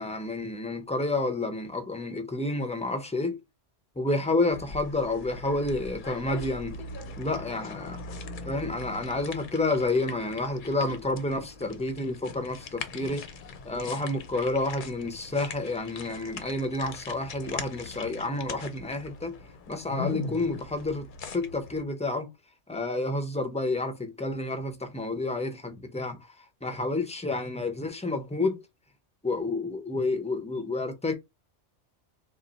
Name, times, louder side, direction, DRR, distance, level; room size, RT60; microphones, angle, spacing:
voice 1, 0.0-3.4 4.0-6.8 7.2-8.0 8.4-13.2 13.6-19.4 19.7-21.1 21.3-22.3 22.7-26.2 26.6-28.6 29.2-31.1, left 2 dB, 10° left, 0.3 m, -29 dB
sound 1, 4.5-21.8, left 4 dB, 55° left, 0.6 m, -41 dB
3.4 x 2.4 x 3.9 m
omnidirectional pair, 1.2 m